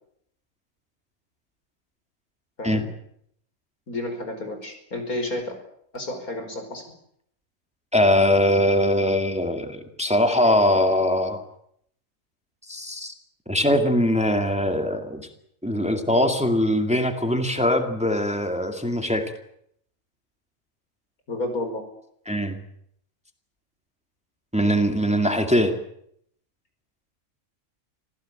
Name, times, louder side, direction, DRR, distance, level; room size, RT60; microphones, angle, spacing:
voice 1, 3.9-5.5 5.9-6.8 21.3-21.9, left 2 dB, 80° left, 5 dB, 5.6 m, -31 dB
voice 2, 7.9-11.4 12.7-13.1 13.5-15.3 15.6-19.3 22.3-22.6 24.5-25.7, left 1 dB, 5° right, 5 dB, 2.3 m, -21 dB
26.0 x 16.5 x 9.0 m, 0.71 s
omnidirectional pair, 1.5 m